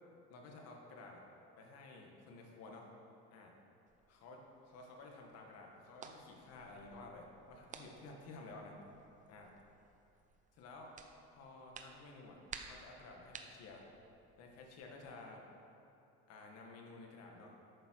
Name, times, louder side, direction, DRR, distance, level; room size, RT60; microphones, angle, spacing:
voice 1, 0.3-1.2 1.6-2.9 3.3-3.5 4.1-8.8 9.3-9.5 10.5-10.9 11.3-13.9 14.4-15.4 16.3-17.6, left 3 dB, 55° left, 1 dB, 1.9 m, -53 dB
sound 1, 3.9-15.1, right 5 dB, 25° right, 0.7 m, -56 dB
12.0 x 8.9 x 4.8 m, 2.8 s
cardioid pair, 145°, 29 cm